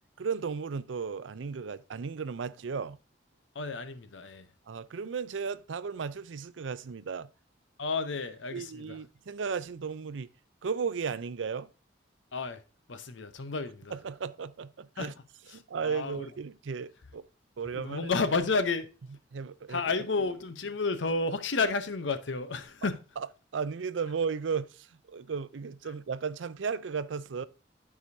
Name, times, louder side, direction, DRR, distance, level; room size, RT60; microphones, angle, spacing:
voice 1, 0.2-3.0 4.7-7.3 8.5-10.3 10.6-11.7 13.9-15.1 15.5-17.2 17.6-18.1 19.3-19.8 23.5-27.4, right 5 dB, 90° right, 0.5 m, -35 dB
voice 2, 3.5-4.5 7.8-9.0 12.3-12.6 12.9-14.0 15.0-15.1 15.5-16.3 17.7-18.9 19.7-23.0, left 4 dB, 80° left, 0.8 m, -31 dB
12.0 x 4.9 x 2.7 m
head